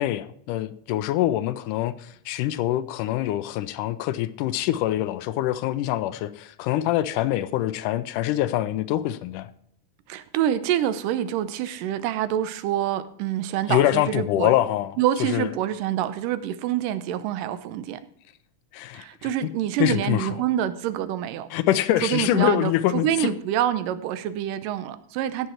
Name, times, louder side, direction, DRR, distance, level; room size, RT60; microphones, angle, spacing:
voice 1, 0.0-1.9 2.3-9.5 13.7-15.0 15.3-15.5 18.7-19.1 19.8-20.3 21.5-23.3, left 13 dB, 85° left, 2.1 m, -24 dB
voice 2, 10.1-14.5 15.0-18.0 18.9-21.5 22.0-25.5, right 11 dB, 85° right, 2.4 m, -26 dB
16.0 x 6.5 x 4.4 m
omnidirectional pair, 3.8 m